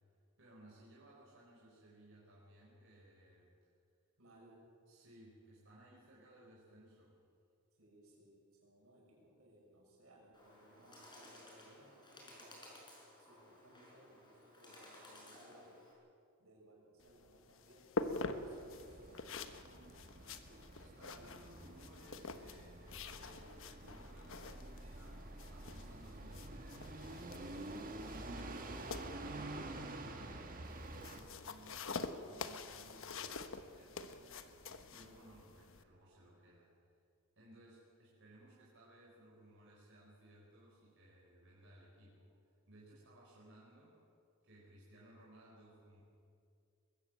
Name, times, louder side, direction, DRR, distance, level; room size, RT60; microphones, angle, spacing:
voice 1, 0.4-3.5 4.9-7.2 20.8-27.6 28.2-36.8 37.4-42.3 42.7-44.0 44.4-46.0, right 1 dB, 60° right, -5 dB, 4.4 m, -61 dB
voice 2, 4.2-4.7 7.8-12.8 13.2-15.8 16.4-19.5, right 1 dB, 80° right, -2 dB, 6.5 m, -64 dB
Bird, 10.3-15.9, left 1 dB, 20° left, 5.2 m, -58 dB
sound 1, 17.0-35.8, left 3 dB, 65° left, 1.1 m, -47 dB
sound 2, 18.0-31.2, right 2 dB, 40° right, 1.7 m, -49 dB
22.0 x 16.0 x 7.8 m, 2.4 s
head